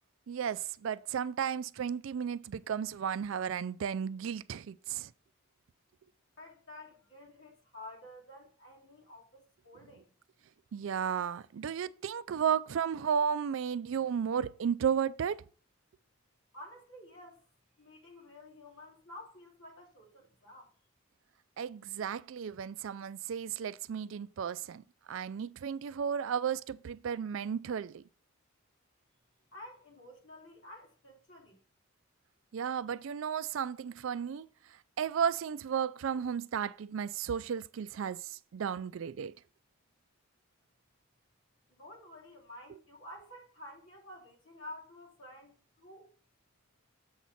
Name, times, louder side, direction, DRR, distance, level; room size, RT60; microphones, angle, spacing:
voice 1, 0.3-5.1 10.7-15.4 21.6-28.0 32.5-34.5 35.0-39.4, right 7 dB, 70° right, 0.3 m, -34 dB
voice 2, 6.4-10.1 16.5-17.4 17.8-20.7 29.5-31.6 41.7-46.1, left 1 dB, 65° left, 2.8 m, -51 dB
7.2 x 4.1 x 5.8 m
head